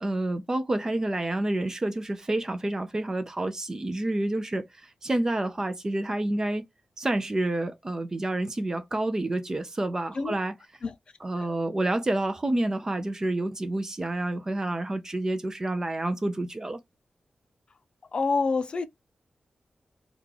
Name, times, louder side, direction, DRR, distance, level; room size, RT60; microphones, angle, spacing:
voice 1, 0.0-6.7 7.0-10.5 11.2-16.8, right 1 dB, 20° right, 0.4 m, -29 dB
voice 2, 18.1-18.8, left 4 dB, 40° left, 0.5 m, -27 dB
3.0 x 2.3 x 3.7 m
wide cardioid pair, 175°, 3 cm